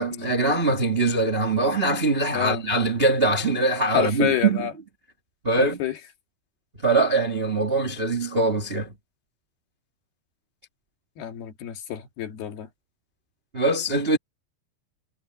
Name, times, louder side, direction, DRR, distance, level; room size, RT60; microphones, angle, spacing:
voice 1, 0.0-4.7 5.4-5.8 6.8-8.9 13.5-14.2, right 2 dB, 35° right, 0.9 m, -22 dB
voice 2, 2.3-2.6 3.9-4.7 5.6-6.0 11.2-12.7, left 10 dB, 75° left, 4.1 m, -28 dB
omnidirectional pair, 4.6 m